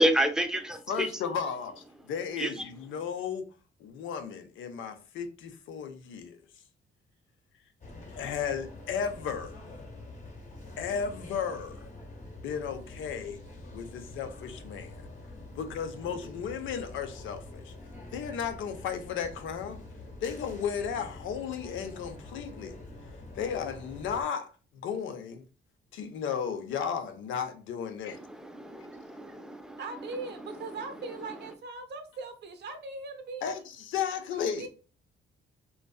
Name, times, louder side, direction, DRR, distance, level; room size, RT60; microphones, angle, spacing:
voice 1, 0.0-1.1 2.4-2.7 28.8-29.8, right 1 dB, 5° right, 0.3 m, -28 dB
voice 2, 0.9-3.4 3.8-6.4 8.1-9.5 10.8-11.9 12.4-13.4 13.7-14.9 15.6-17.7 18.1-19.8 20.2-22.8 23.3-25.4 25.9-28.1 33.4-34.7, left 7 dB, 75° left, 0.5 m, -34 dB
sound 1, 7.8-24.2, left 2 dB, 40° left, 0.8 m, -46 dB
voice 3, 29.8-33.5 34.5-34.7, right 3 dB, 60° right, 0.6 m, -40 dB
2.6 x 2.2 x 2.2 m
cardioid pair, 90°, 20 cm